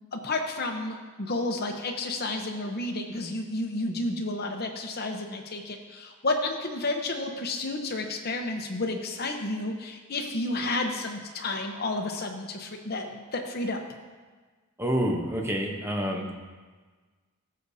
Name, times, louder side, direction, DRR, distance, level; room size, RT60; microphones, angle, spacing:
voice 1, 0.1-13.8, left 2 dB, 45° left, 3 dB, 0.9 m, -31 dB
voice 2, 14.8-16.3, equal, 10° right, 1 dB, 0.9 m, -28 dB
14.5 x 6.6 x 2.8 m, 1.4 s
head